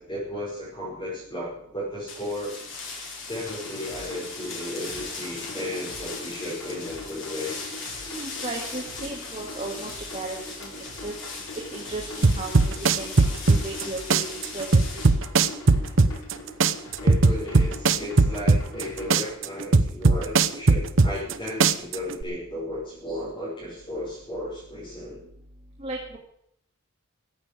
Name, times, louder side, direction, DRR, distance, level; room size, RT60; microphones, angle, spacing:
voice 1, 0.0-2.6 3.0-7.6 17.0-25.2, left 1 dB, 25° left, -7 dB, 5.5 m, -34 dB
sound 1, 2.1-15.1, left 4 dB, 60° left, 4.9 m, -38 dB
sound 2, 3.4-19.4, left 1 dB, 80° left, 4.2 m, -43 dB
voice 2, 8.1-10.7 11.0-11.1 11.7-14.7 14.9-15.0 25.8-26.2, right 2 dB, 30° right, -2 dB, 2.3 m, -35 dB
sound 3, 12.2-13.8 14.1-16.3 16.6-18.8 19.1-21.3 21.6-22.2, right 3 dB, 60° right, 0.8 m, -18 dB
14.5 x 8.5 x 8.4 m, 0.72 s
head